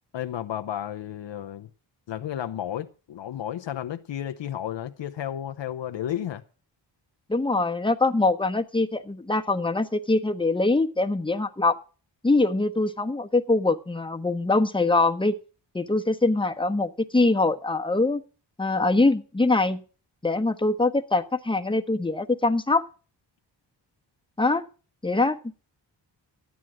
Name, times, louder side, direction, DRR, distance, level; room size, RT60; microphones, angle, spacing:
voice 1, 0.1-1.7 2.1-6.4, left 11 dB, 75° left, 0.9 m, -32 dB
voice 2, 7.3-11.8 12.2-15.4 15.7-18.2 18.6-19.8 20.2-22.8 24.4-24.7 25.0-25.4, left 2 dB, 10° left, 1.2 m, -23 dB
14.0 x 9.3 x 6.1 m
wide cardioid pair, 115°, 44 cm